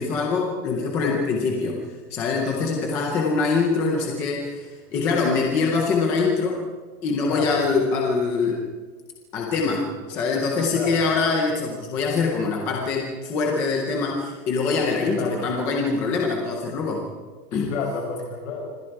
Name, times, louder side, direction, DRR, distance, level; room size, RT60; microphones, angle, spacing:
voice 1, 0.0-1.8 2.1-6.6 7.0-8.7 9.3-17.0 17.5-17.7, left 4 dB, 5° left, 0 dB, 0.5 m, -24 dB
voice 2, 7.3-7.6 10.7-11.1 15.0-15.4 17.7-18.8, left 4 dB, 50° left, 1 dB, 7.5 m, -30 dB
25.5 x 25.0 x 4.7 m, 1.4 s
hypercardioid pair, 170°, 48 cm